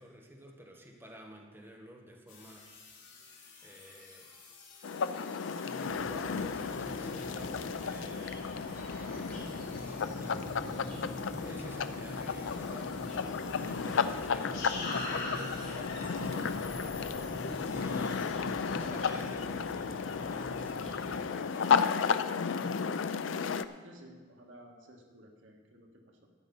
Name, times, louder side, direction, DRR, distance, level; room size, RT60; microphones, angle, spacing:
voice 1, 0.0-2.7 3.6-4.3 5.6-8.9 9.3-10.5 11.4-13.0 13.6-17.0 17.7-22.9, equal, 10° right, 0 dB, 1.3 m, -51 dB
sound 1, 2.3-18.3, left 3 dB, 65° left, 3.6 m, -47 dB
sound 2, 4.8-23.7, left 6 dB, 85° left, 0.5 m, -33 dB
sound 3, 5.8-21.2, equal, 10° left, 3.3 m, -44 dB
voice 2, 5.8-6.1 23.8-26.3, right 1 dB, 90° right, 1 dB, 1.7 m, -54 dB
12.0 x 8.6 x 5.4 m, 1.4 s
head